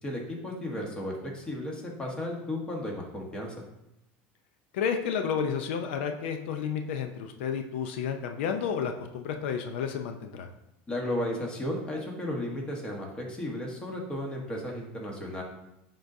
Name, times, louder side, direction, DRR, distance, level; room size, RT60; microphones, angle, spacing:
voice 1, 0.0-3.5 10.9-15.4, left 1 dB, 15° left, 0 dB, 1.3 m, -34 dB
voice 2, 4.7-10.5, left 7 dB, 90° left, 6 dB, 0.6 m, -31 dB
11.5 x 3.9 x 2.7 m, 0.85 s
supercardioid pair, 150°, 6 cm